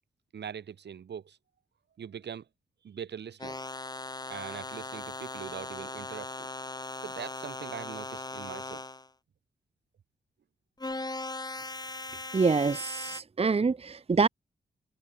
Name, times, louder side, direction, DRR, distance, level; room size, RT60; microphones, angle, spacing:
voice 1, 0.3-1.4 2.0-2.5 2.8-3.6 4.3-6.5 7.0-8.8, right 8 dB, 75° right, 2.7 m, -42 dB
sound 1, 3.4-9.1 10.8-13.2, left 2 dB, 25° left, 3.9 m, -39 dB
voice 2, 12.3-14.3, right 4 dB, 35° right, 0.8 m, -26 dB
cardioid pair, 65°, 18 cm